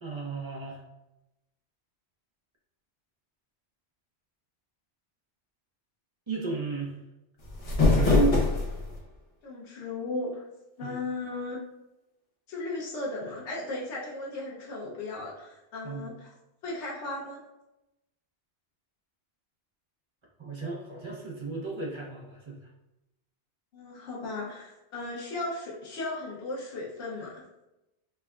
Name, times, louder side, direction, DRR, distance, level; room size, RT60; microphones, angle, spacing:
voice 1, 0.0-0.8 6.3-6.9 7.9-8.4 10.8-11.0 15.8-16.0 20.4-22.6, right 4 dB, 30° right, -3 dB, 0.6 m, -32 dB
sound 1, 7.4-9.0, left 3 dB, 40° left, 0.6 m, -23 dB
voice 2, 9.4-10.5 10.8-11.6 12.5-16.3 16.6-17.4 23.7-27.4, left 2 dB, 80° left, -4 dB, 1.1 m, -36 dB
4.5 x 2.2 x 2.3 m, 0.93 s
omnidirectional pair, 1.1 m